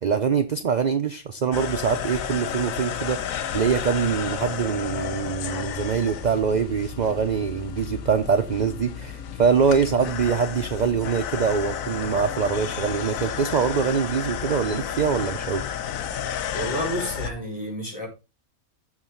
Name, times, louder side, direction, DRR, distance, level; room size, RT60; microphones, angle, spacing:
voice 1, 0.0-15.7, right 6 dB, 55° right, 0.5 m, -24 dB
sound 1, 1.5-17.3, left 9 dB, 70° left, 1.1 m, -32 dB
voice 2, 16.5-18.1, equal, 25° left, 4.8 m, -30 dB
14.5 x 4.9 x 3.9 m
omnidirectional pair, 1.5 m